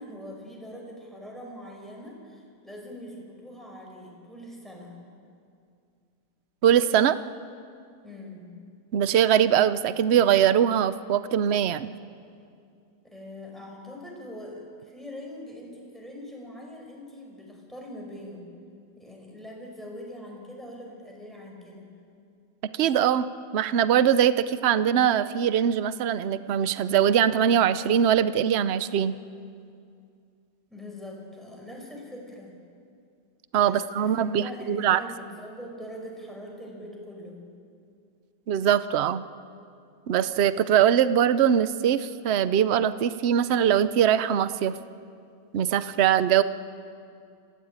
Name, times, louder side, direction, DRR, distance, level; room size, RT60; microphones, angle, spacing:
voice 1, 0.0-5.0 8.0-8.5 13.0-18.4 19.0-21.9 30.7-32.5 33.6-37.4, left 1 dB, ahead, -1 dB, 5.2 m, -42 dB
voice 2, 6.6-7.2 8.9-11.9 22.7-23.3 23.5-29.1 33.5-35.0 38.5-39.2 40.1-44.7 45.5-46.4, right 9 dB, 60° right, 14 dB, 0.7 m, -22 dB
25.5 x 16.5 x 8.7 m, 2.4 s
omnidirectional pair, 1.8 m